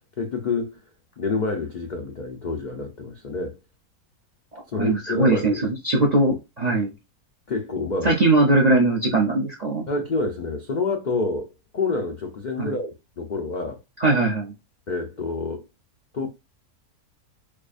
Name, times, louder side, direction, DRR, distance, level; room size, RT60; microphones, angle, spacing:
voice 1, 0.2-0.8 1.2-3.6 4.7-5.7 7.5-8.2 9.9-13.8 14.9-15.7 16.1-16.3, left 3 dB, 90° left, 0.4 m, -28 dB
voice 2, 4.5-6.9 8.0-9.9 12.6-12.7 14.0-14.5, right 2 dB, 65° right, 0.4 m, -20 dB
4.6 x 2.4 x 2.4 m
omnidirectional pair, 1.6 m